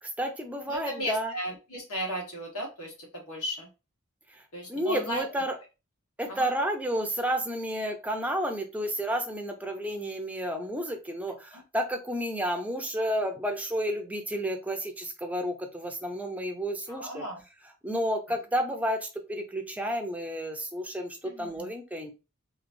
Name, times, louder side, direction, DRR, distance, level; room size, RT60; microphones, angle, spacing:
voice 1, 0.0-1.3 4.3-4.4 4.7-5.6 6.2-17.3 17.8-22.1, equal, 5° right, 4 dB, 0.6 m, -31 dB
voice 2, 0.7-3.7 4.5-5.3 6.3-6.5 11.5-11.6 16.9-17.4 18.3-18.4 21.2-21.7, equal, 85° left, -1 dB, 1.5 m, -35 dB
3.1 x 2.9 x 2.6 m, 0.29 s
head